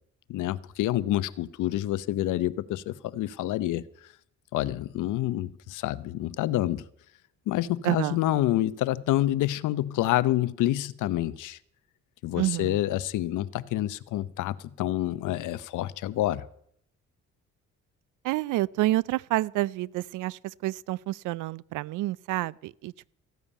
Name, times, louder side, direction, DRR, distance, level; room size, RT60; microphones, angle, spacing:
voice 1, 0.3-3.8 4.5-6.8 7.5-11.6 12.2-16.5, left 14 dB, 85° left, 0.7 m, -28 dB
voice 2, 7.8-8.2 12.4-12.8 18.2-23.1, right 17 dB, 85° right, 0.5 m, -29 dB
15.0 x 7.1 x 9.9 m
cardioid pair, 90°, 30 cm